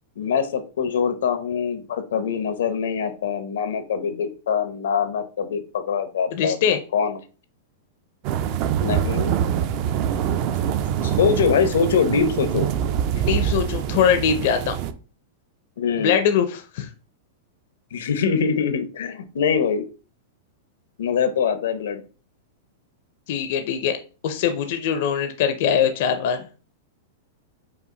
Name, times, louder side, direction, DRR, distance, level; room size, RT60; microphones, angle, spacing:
voice 1, 0.2-6.6 6.9-7.2 8.8-9.4 11.0-12.7 15.8-16.2 17.9-19.9 21.0-22.0, left 6 dB, 85° left, 10 dB, 0.8 m, -23 dB
voice 2, 6.3-6.8 13.2-14.8 16.0-16.9 23.3-24.0 24.2-26.5, left 8 dB, 45° left, 8 dB, 0.5 m, -22 dB
sound 1, 8.2-14.9, right 9 dB, 30° right, 0.3 m, -24 dB
5.5 x 2.4 x 3.8 m, 0.35 s
supercardioid pair, 175°, 0 cm